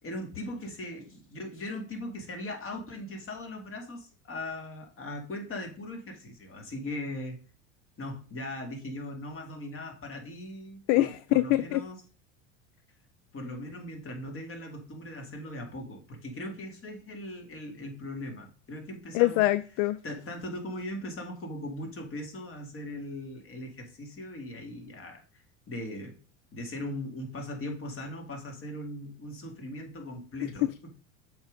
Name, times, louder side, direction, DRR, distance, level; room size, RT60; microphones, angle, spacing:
voice 1, 0.0-7.4 8.0-12.0 13.3-19.4 20.0-25.2 25.7-26.2 26.5-30.9, left 1 dB, 35° left, 2.1 m, -39 dB
voice 2, 10.9-11.8 19.1-20.0 30.4-30.5, left 16 dB, 60° left, 0.5 m, -24 dB
7.0 x 3.8 x 5.1 m
hypercardioid pair, 90°, 38 cm